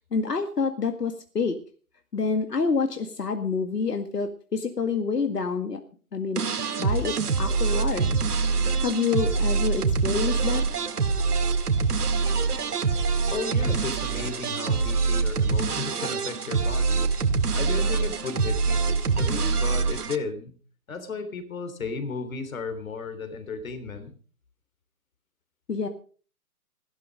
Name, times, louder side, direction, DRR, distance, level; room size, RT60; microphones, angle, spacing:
voice 1, 0.1-1.6 2.1-5.8 6.1-6.4 6.8-8.2 8.6-10.6 25.7-25.9, left 5 dB, 85° left, 7 dB, 2.1 m, -27 dB
sound 1, 6.4-20.2, right 4 dB, 75° right, 2.2 m, -25 dB
voice 2, 13.3-17.1 17.5-20.5 20.9-24.1, left 4 dB, 60° left, 10 dB, 3.4 m, -34 dB
15.5 x 12.5 x 5.2 m, 0.41 s
hypercardioid pair, 155°, 47 cm